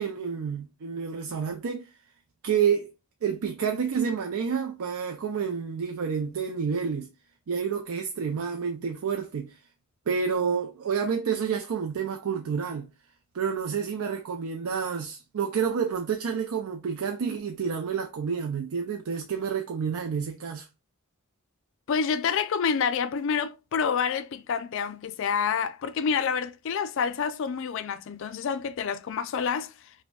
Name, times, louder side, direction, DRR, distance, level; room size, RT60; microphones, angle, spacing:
voice 1, 0.0-1.9 2.4-2.9 3.2-7.1 7.5-9.6 10.1-12.9 13.3-20.7, right 6 dB, 80° right, 0.4 m, -29 dB
voice 2, 21.9-29.7, left 6 dB, 60° left, 0.3 m, -28 dB
5.1 x 2.2 x 2.3 m
head